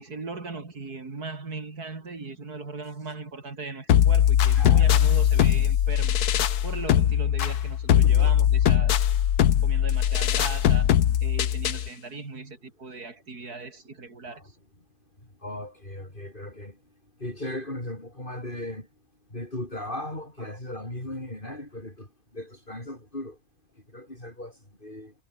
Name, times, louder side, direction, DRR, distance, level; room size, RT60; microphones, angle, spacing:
voice 1, 0.0-6.2 6.6-8.9 9.6-10.9 11.2-14.6, right 3 dB, 85° right, 4.1 m, -38 dB
sound 1, 3.9-11.9, left 10 dB, 90° left, 1.5 m, -21 dB
voice 2, 4.5-5.0 8.0-8.3 14.3-14.5 15.4-16.8 17.2-18.9 19.3-23.4 23.9-25.1, left 1 dB, 35° left, 6.7 m, -37 dB
omnidirectional pair, 1.6 m